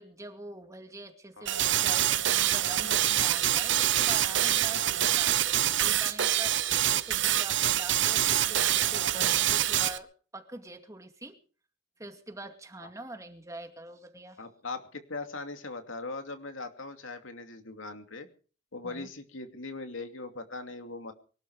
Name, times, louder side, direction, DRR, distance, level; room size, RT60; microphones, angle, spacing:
voice 1, 0.0-11.4 12.0-14.4 18.8-19.1, right 2 dB, 15° right, 5 dB, 2.3 m, -44 dB
sound 1, 1.5-10.0, right 12 dB, 65° right, 0.9 m, -26 dB
voice 2, 14.4-18.3 18.7-21.1, left 3 dB, 90° left, 6 dB, 2.6 m, -40 dB
24.0 x 12.0 x 4.9 m, 0.41 s
head